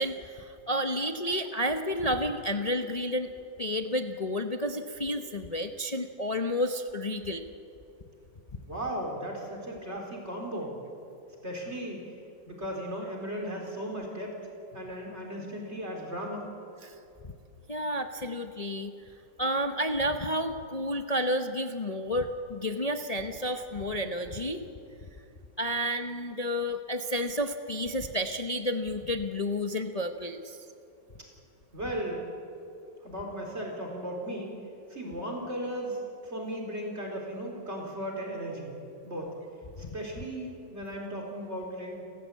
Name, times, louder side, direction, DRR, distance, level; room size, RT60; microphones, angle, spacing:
voice 1, 0.0-3.3 3.6-7.5 16.8-16.9 17.2-17.3 17.7-18.9 19.4-24.6 25.6-30.6 39.8-39.9, equal, 35° left, 5 dB, 0.6 m, -31 dB
voice 2, 8.6-10.8 11.4-12.1 12.5-14.4 14.7-16.5 31.7-32.2 33.0-34.5 34.9-38.8 39.0-39.3 39.8-42.0, equal, 35° right, 0 dB, 4.4 m, -36 dB
30.0 x 14.0 x 8.4 m, 2.6 s
omnidirectional pair, 2.0 m